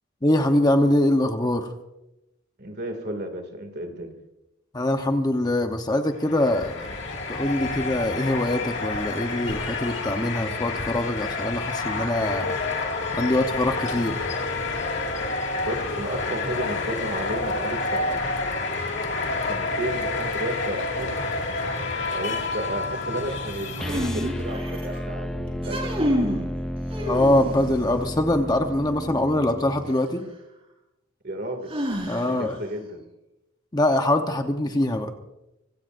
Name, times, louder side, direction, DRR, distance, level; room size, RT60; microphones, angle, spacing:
voice 1, 0.2-1.7 4.7-7.0 7.3-12.5 13.1-14.3 27.1-30.2 32.1-32.6 33.7-35.1, left 1 dB, 20° left, 5 dB, 0.9 m, -23 dB
voice 2, 2.6-4.1 15.6-18.2 19.5-21.2 22.1-26.0 31.2-31.8 32.3-33.0, right 1 dB, 55° right, 6 dB, 2.4 m, -33 dB
sound 1, 6.1-24.6, left 3 dB, 60° left, 2.1 m, -29 dB
sound 2, 23.8-29.9, equal, 5° left, 0.5 m, -32 dB
sound 3, 23.8-25.0 25.5-26.4 26.9-27.8 29.8-29.9 31.7-32.5, equal, 30° right, 4.4 m, -28 dB
25.5 x 17.0 x 2.6 m, 0.93 s
head